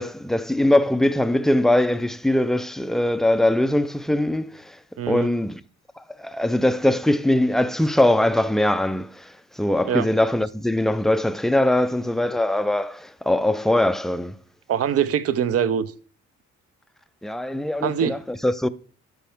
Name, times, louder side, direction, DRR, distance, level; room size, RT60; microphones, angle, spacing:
voice 1, 0.0-4.8 5.1-5.6 6.0-14.4 17.2-18.7, left 1 dB, ahead, 0.4 m, -21 dB
voice 2, 5.0-5.3 9.8-10.0 14.7-15.9 17.8-18.1, right 9 dB, 50° right, 0.6 m, -23 dB
12.0 x 4.5 x 3.5 m
cardioid pair, 90°, 30 cm